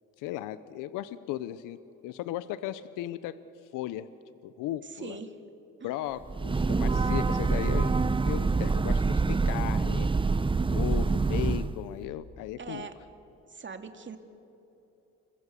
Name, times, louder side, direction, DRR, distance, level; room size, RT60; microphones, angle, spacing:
voice 1, 0.2-1.8 2.0-3.4 3.7-4.1 4.4-5.2 5.8-7.9 8.3-10.1 10.7-12.9, left 13 dB, 85° left, 14 dB, 0.8 m, -36 dB
voice 2, 4.9-5.3 5.8-5.9 12.6-12.9 13.5-14.2, right 5 dB, 35° right, 6 dB, 2.4 m, -41 dB
Breathing / Train, 6.2-11.8, right 4 dB, 15° right, 0.7 m, -26 dB
28.5 x 22.5 x 6.8 m, 2.9 s
supercardioid pair, 70°, 31 cm